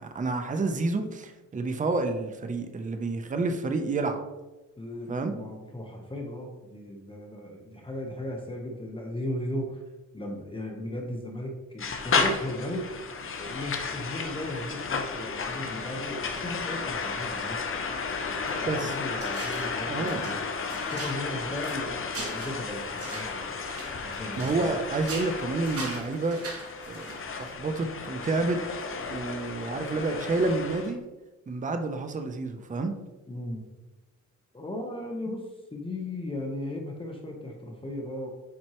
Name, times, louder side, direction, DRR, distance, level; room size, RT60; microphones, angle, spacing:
voice 1, 0.0-4.2 5.1-5.3 18.6-18.9 19.9-20.3 24.4-26.4 26.9-27.1 27.4-28.6 29.1-31.0 31.5-33.0 35.3-35.4, right 3 dB, 25° right, 7 dB, 0.6 m, -29 dB
voice 2, 4.8-9.8 10.1-13.1 13.4-17.7 18.3-20.4 20.9-23.5 24.0-24.7 33.3-33.7 34.5-38.3, left 1 dB, 15° left, 0 dB, 0.9 m, -36 dB
sound 1, 11.8-30.9, left 5 dB, 45° left, 0.8 m, -33 dB
sound 2, 19.2-19.8 20.1-24.7 25.0-27.5, right 3 dB, 50° right, 1.3 m, -41 dB
7.6 x 4.4 x 3.0 m, 1.1 s
cardioid pair, 105°, 30 cm